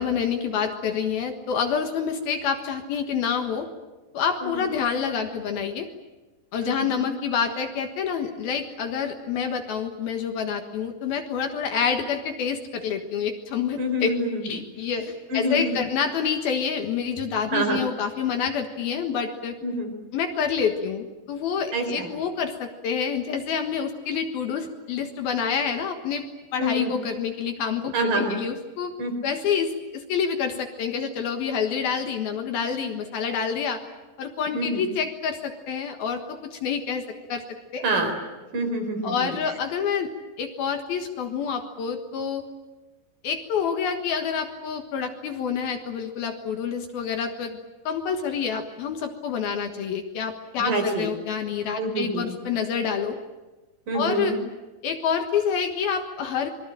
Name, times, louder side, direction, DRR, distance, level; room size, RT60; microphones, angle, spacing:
voice 1, 0.0-3.7 4.1-5.9 6.5-14.1 14.4-19.6 20.1-26.2 26.5-28.9 29.2-33.8 34.2-37.0 37.3-37.4 37.7-37.9 39.0-40.1 40.4-42.4 43.2-47.6 47.8-53.2 53.9-54.4 54.8-56.5, left 7 dB, 65° left, 5 dB, 3.1 m, -27 dB
voice 2, 6.6-7.1 13.8-14.4 15.3-15.8 17.5-17.8 19.6-19.9 21.7-22.1 26.6-26.9 27.9-28.4 29.0-29.1 34.5-34.8 37.8-38.1 38.5-39.3 50.6-51.1 51.8-52.4 53.9-54.4, right 1 dB, 50° right, 5 dB, 5.6 m, -26 dB
26.0 x 22.5 x 8.9 m, 1.2 s
omnidirectional pair, 5.1 m